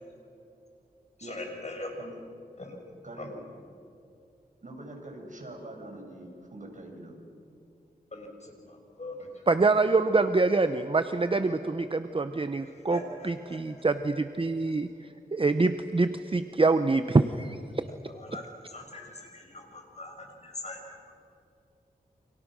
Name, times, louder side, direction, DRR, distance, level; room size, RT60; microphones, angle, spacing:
voice 1, 1.2-2.1 2.6-2.8 3.2-3.3 8.1-9.4 12.9-13.8 18.1-20.8, left 2 dB, 45° left, 2 dB, 6.3 m, -42 dB
voice 2, 3.0-3.4 4.6-7.2, right 1 dB, 50° right, 1 dB, 6.3 m, -44 dB
voice 3, 9.5-17.9, right 3 dB, 35° right, 9 dB, 0.9 m, -25 dB
29.5 x 27.5 x 6.3 m, 2.5 s
wide cardioid pair, 75°, 16 cm